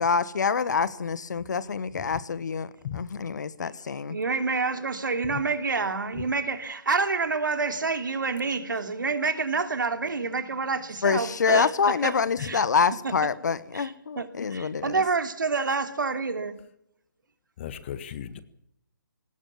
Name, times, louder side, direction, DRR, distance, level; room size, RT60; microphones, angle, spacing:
voice 1, 0.0-4.2 11.0-15.0, left 5 dB, 55° left, 17 dB, 1.3 m, -26 dB
voice 2, 4.1-12.6 13.0-13.1 13.7-16.6, right 4 dB, 65° right, 8 dB, 3.1 m, -28 dB
voice 3, 17.6-18.4, left 10 dB, 35° left, 14 dB, 1.6 m, -36 dB
20.5 x 19.0 x 7.3 m, 0.76 s
figure-of-eight pair, 145°, 11 cm